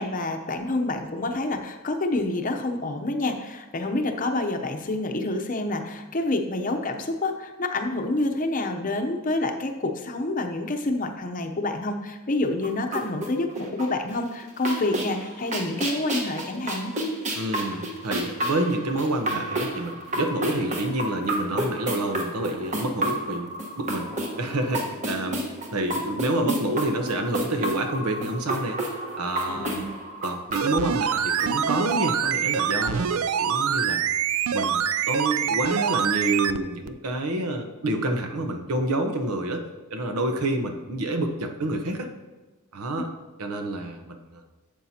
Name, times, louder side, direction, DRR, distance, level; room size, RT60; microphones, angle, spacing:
voice 1, 0.0-16.9 29.5-29.8 30.8-30.9, left 2 dB, 35° left, 5 dB, 0.7 m, -28 dB
sound 1, 12.6-14.1 14.4-32.0, right 1 dB, 35° right, 1.2 m, -31 dB
voice 2, 17.3-24.1 24.4-25.4 25.7-28.8 29.1-29.8 30.2-34.0 34.5-39.6 39.9-42.1 42.7-43.1 43.4-44.4, right 1 dB, 85° right, 5 dB, 0.9 m, -28 dB
sound 2, 30.5-36.6 36.9-37.0, right 8 dB, 70° right, 0.4 m, -25 dB
11.5 x 7.4 x 2.8 m, 1.2 s
head